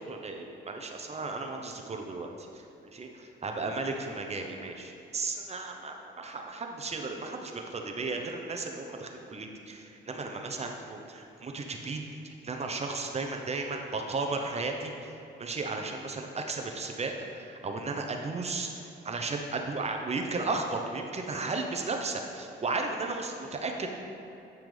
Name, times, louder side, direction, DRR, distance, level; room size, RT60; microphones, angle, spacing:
voice 1, 0.0-18.7 19.0-23.9, right 3 dB, 35° right, 3 dB, 0.9 m, -35 dB
9.1 x 5.8 x 3.4 m, 2.9 s
cardioid pair, 90°, 20 cm